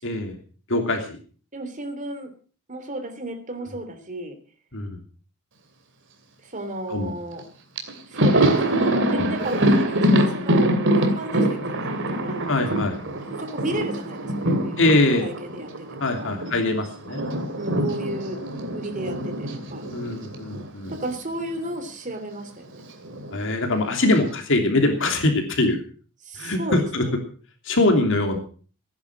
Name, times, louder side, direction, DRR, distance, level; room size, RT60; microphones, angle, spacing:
voice 1, 0.0-0.4 0.7-1.2 4.7-5.0 6.9-7.1 12.5-13.0 14.8-15.3 16.0-17.3 19.9-20.9 23.3-25.8 26.4-27.1 27.6-28.4, left 2 dB, 60° left, 4 dB, 2.9 m, -22 dB
voice 2, 1.5-2.3 2.7-4.4 6.4-7.4 8.1-10.7 11.0-16.3 17.5-18.4 18.7-19.8 20.9-22.9 26.2-26.8, right 1 dB, 35° right, 6 dB, 3.1 m, -34 dB
Thunder, 7.4-7.5 7.8-16.6 16.8-21.2 21.4-21.6 22.7-23.4, right 1 dB, 55° right, 2.6 m, -24 dB
16.5 x 10.5 x 6.2 m, 0.41 s
head